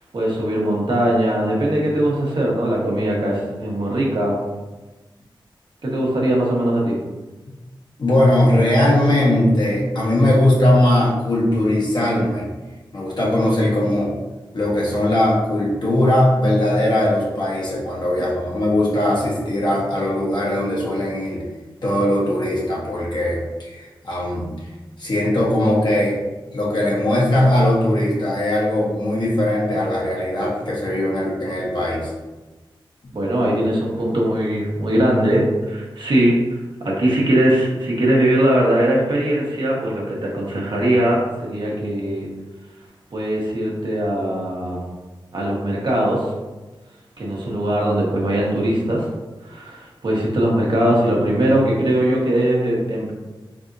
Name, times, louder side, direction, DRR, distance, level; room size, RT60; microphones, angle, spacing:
voice 1, 0.1-4.4 5.8-7.0 33.1-42.3 43.1-44.8 45.3-46.3 47.2-49.1 49.4-53.1, right 1 dB, 65° right, -4 dB, 1.1 m, -20 dB
voice 2, 8.0-12.5 12.9-14.1 14.5-21.4 21.8-24.5 25.0-26.2 26.5-32.1, left 1 dB, 55° left, -5 dB, 1.3 m, -19 dB
4.1 x 3.5 x 2.6 m, 1.2 s
wide cardioid pair, 90°, 9 cm